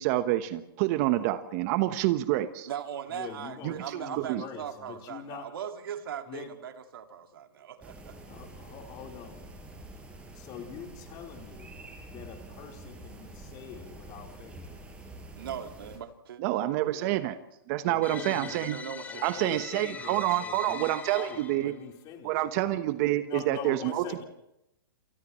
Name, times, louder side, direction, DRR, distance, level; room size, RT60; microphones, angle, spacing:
voice 1, 0.0-2.7 3.6-4.4 16.4-17.4 17.7-18.8 19.2-21.7 22.2-24.0, right 15 dB, 40° right, 10 dB, 1.2 m, -28 dB
voice 2, 0.9-1.3 3.1-5.5 6.3-6.5 8.3-9.5 10.3-11.7 12.1-14.6 17.8-18.7 19.1-22.7 23.3-24.2, left 8 dB, 35° left, 2 dB, 4.1 m, -44 dB
voice 3, 2.7-8.1 15.4-16.4 16.9-17.2 18.5-19.3, right 9 dB, 70° right, 5 dB, 2.2 m, -39 dB
sound 1, 7.8-16.0, right 2 dB, 10° right, 5.8 m, -47 dB
sound 2, 18.0-21.8, left 5 dB, 15° left, 2.5 m, -42 dB
30.0 x 27.5 x 3.2 m, 0.84 s
hypercardioid pair, 130°, 12 cm